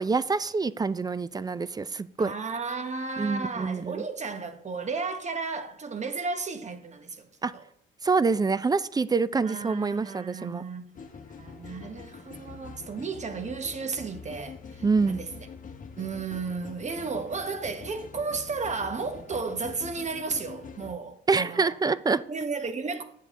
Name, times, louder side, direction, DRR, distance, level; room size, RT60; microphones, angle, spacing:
voice 1, 0.0-2.3 3.2-4.0 7.4-7.5 8.0-10.6 14.8-15.2 21.3-22.2, right 4 dB, 20° right, 0.4 m, -26 dB
voice 2, 2.2-7.3 7.5-7.6 9.4-10.9 11.4-15.5 16.0-21.7 22.3-23.0, right 4 dB, 35° right, 1.1 m, -34 dB
sound 1, 10.9-20.9, left 5 dB, 40° left, 0.9 m, -45 dB
8.5 x 7.2 x 3.6 m
cardioid pair, 90°, 20 cm